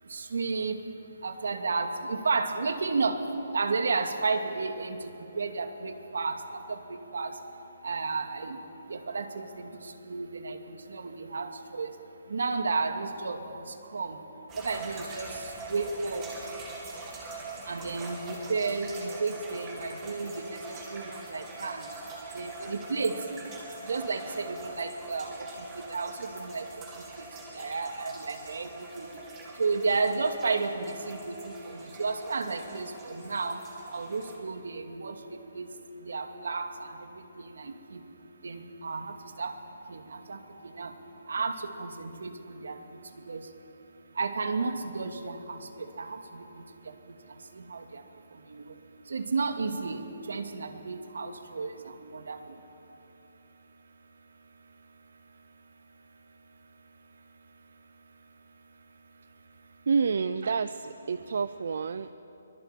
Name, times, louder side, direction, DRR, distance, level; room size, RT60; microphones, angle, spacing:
voice 1, 0.1-0.8 1.2-3.2 3.5-6.4 6.7-7.3 7.8-8.6 8.9-9.7 10.1-10.6 10.9-11.9 12.3-13.6 13.9-14.2 14.6-15.3 15.7-16.3 17.7-21.9 22.3-23.2 23.9-25.5 25.8-26.6 27.6-29.1 29.6-33.6 33.9-35.2 35.5-35.7 36.1-36.9 37.4-38.0 38.4-39.5 39.9-40.4 40.8-40.9 41.3-42.8 43.3-43.4 44.2-45.6 46.0-46.5 47.7-48.0 48.5-48.6 49.1-50.0 50.3-51.7 52.0-52.4, right 4 dB, 65° right, 7 dB, 2.5 m, -32 dB
sound 1, 14.5-34.4, right 2 dB, 10° right, 2.5 m, -43 dB
voice 2, 59.9-62.1, right 5 dB, 50° right, 13 dB, 0.6 m, -28 dB
24.0 x 23.0 x 9.2 m, 3.0 s
hypercardioid pair, 180°, 0 cm